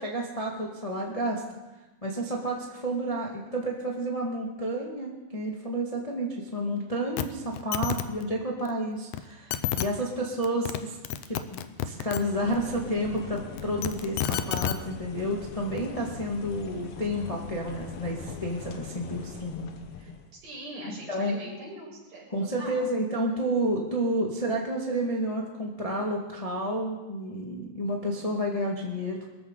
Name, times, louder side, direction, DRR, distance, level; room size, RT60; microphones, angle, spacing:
voice 1, 0.0-1.4 2.0-11.0 11.3-19.7 21.1-21.3 22.3-29.3, right 1 dB, 15° left, -2 dB, 1.2 m, -30 dB
sound 1, 7.2-7.3 7.5-8.0 9.1-9.2 9.5-9.9 10.4-10.8 11.0-12.2 13.6-14.8 15.8-15.9, left 12 dB, 90° left, 2.4 m, -29 dB
sound 2, 12.2-20.3, left 6 dB, 60° left, 1.7 m, -41 dB
voice 2, 20.4-22.3 22.6-22.9, right 1 dB, 65° right, -4 dB, 7.0 m, -41 dB
23.5 x 14.0 x 4.0 m, 1.1 s
omnidirectional pair, 3.9 m